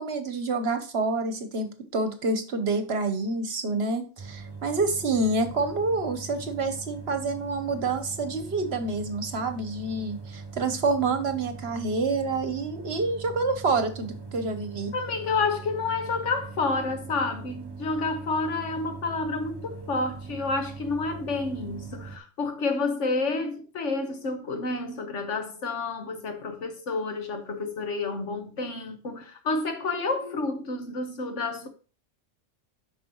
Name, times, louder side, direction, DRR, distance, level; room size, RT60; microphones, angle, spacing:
voice 1, 0.0-14.9, right 3 dB, 60° right, 1.1 m, -28 dB
sound 1, 4.2-22.2, right 4 dB, 25° right, 0.7 m, -41 dB
voice 2, 14.9-31.7, left 3 dB, 80° left, 1.6 m, -29 dB
9.2 x 5.9 x 3.0 m
omnidirectional pair, 1.2 m